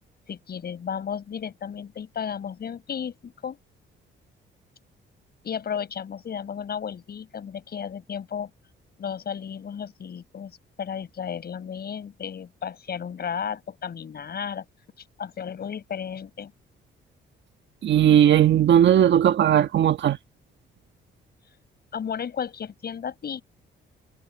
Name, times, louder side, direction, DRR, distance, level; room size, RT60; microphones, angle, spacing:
voice 1, 0.3-3.6 5.4-8.5 9.0-14.6 15.2-16.5 21.9-23.4, left 7 dB, 50° left, 6.4 m, -33 dB
voice 2, 17.8-20.2, right 10 dB, 65° right, 1.6 m, -17 dB
cardioid pair, 90°, 20 cm